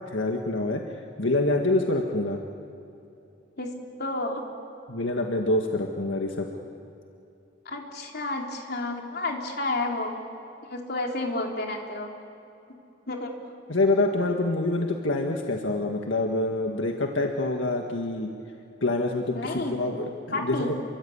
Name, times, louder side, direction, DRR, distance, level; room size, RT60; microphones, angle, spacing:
voice 1, 0.1-0.8 1.2-2.4 4.9-6.5 13.7-18.3 18.8-20.7, left 2 dB, 85° left, 2 dB, 1.8 m, -26 dB
voice 2, 3.6-4.4 7.6-10.2 10.7-12.2 13.1-13.3 19.3-19.8 20.3-20.7, left 2 dB, 55° left, 1 dB, 3.5 m, -31 dB
28.5 x 23.5 x 8.7 m, 2.8 s
head